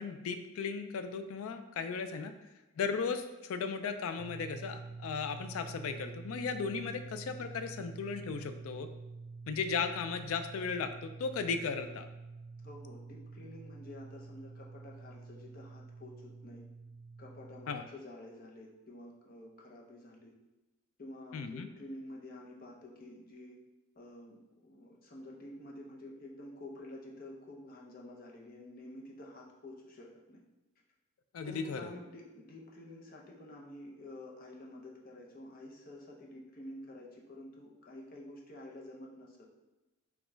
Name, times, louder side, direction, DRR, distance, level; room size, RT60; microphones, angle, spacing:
voice 1, 0.0-2.3 2.8-8.9 9.5-12.1 17.7-17.8 21.3-21.7 31.3-31.9, left 5 dB, 80° left, 9 dB, 0.3 m, -36 dB
sound 1, 4.2-17.8, right 4 dB, 50° right, 0.3 m, -48 dB
voice 2, 12.6-16.7 17.2-20.3 21.0-23.6 23.9-30.4 31.4-39.5, left 1 dB, 45° left, -1 dB, 0.7 m, -49 dB
4.3 x 2.3 x 4.4 m, 1.1 s
head